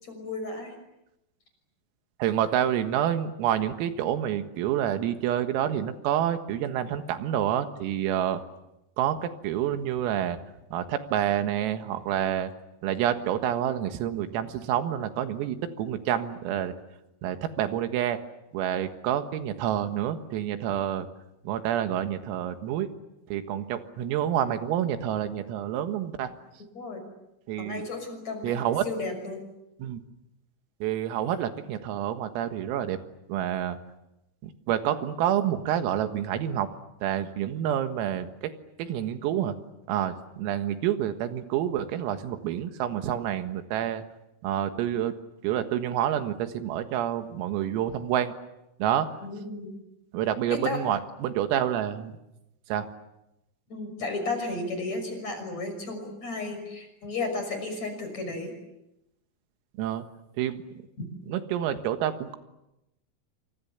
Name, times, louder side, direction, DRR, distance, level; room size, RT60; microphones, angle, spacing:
voice 1, 0.0-0.7 26.8-27.0 27.6-28.6 28.9-29.4 49.2-49.7 50.5-50.8 53.7-58.5, left 3 dB, 35° left, 6 dB, 7.0 m, -33 dB
voice 2, 2.2-8.4 9.0-10.4 10.7-12.5 12.8-16.7 17.2-18.2 18.5-21.1 21.5-22.9 23.3-26.3 27.5-27.8 28.4-28.8 29.8-30.0 30.8-33.0 33.3-33.8 34.4-36.7 37.0-38.5 38.8-39.5 39.9-44.0 44.4-45.1 45.4-48.3 48.8-49.1 50.1-52.2 52.7-52.9 59.8-60.0 60.4-60.6 61.3-62.4, right 10 dB, 90° right, 8 dB, 4.3 m, -28 dB
29.5 x 26.5 x 7.2 m, 0.90 s
omnidirectional pair, 5.9 m